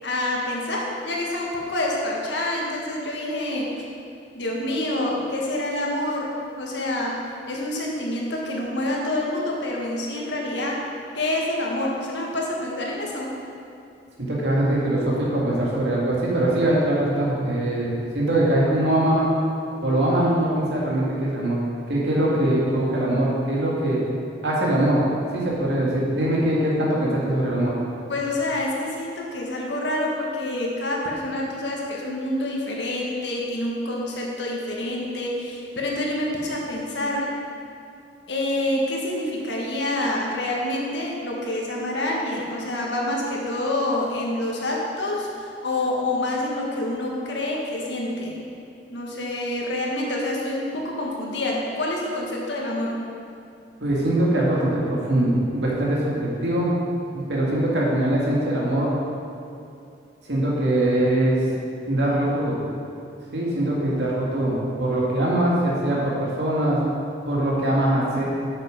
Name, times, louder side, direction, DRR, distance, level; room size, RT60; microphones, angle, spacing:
voice 1, 0.0-3.7 4.3-7.1 7.5-10.8 11.1-13.3 28.1-37.3 38.3-48.4 48.9-52.9, left 1 dB, 85° left, -2 dB, 1.7 m, -27 dB
voice 2, 14.2-19.3 19.8-21.6 21.9-24.0 24.4-25.1 25.3-27.7 53.8-56.7 57.1-58.9 60.3-61.4 61.9-62.6 63.3-66.8 67.2-68.3, right 1 dB, 75° right, -5 dB, 2.2 m, -22 dB
8.7 x 7.0 x 5.2 m, 2.6 s
head